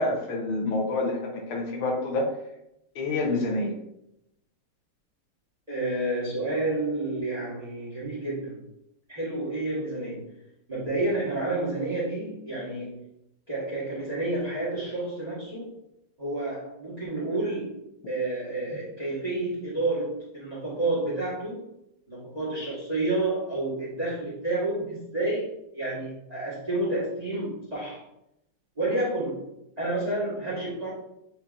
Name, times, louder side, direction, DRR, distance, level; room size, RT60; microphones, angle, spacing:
voice 1, 0.0-2.3 2.9-3.7, left 2 dB, 75° left, 0 dB, 1.6 m, -27 dB
voice 2, 5.7-8.6 9.1-10.3 10.7-13.0 13.5-15.8 16.2-17.8 18.1-21.6 22.1-28.0 28.8-29.4 29.8-30.9, right 2 dB, 25° right, -6 dB, 1.0 m, -30 dB
7.7 x 2.8 x 2.4 m, 0.82 s
omnidirectional pair, 2.4 m